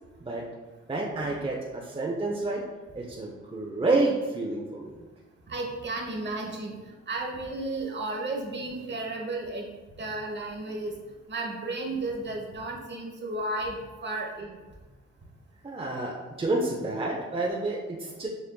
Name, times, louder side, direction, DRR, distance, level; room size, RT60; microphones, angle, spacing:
voice 1, 0.9-2.6 2.9-5.0 15.6-18.3, right 2 dB, 20° right, -3 dB, 0.6 m, -29 dB
voice 2, 5.5-9.7 10.0-11.0 11.3-14.6, right 2 dB, 35° right, 1 dB, 0.9 m, -33 dB
6.7 x 2.5 x 2.3 m, 1.3 s
cardioid pair, 65°, 29 cm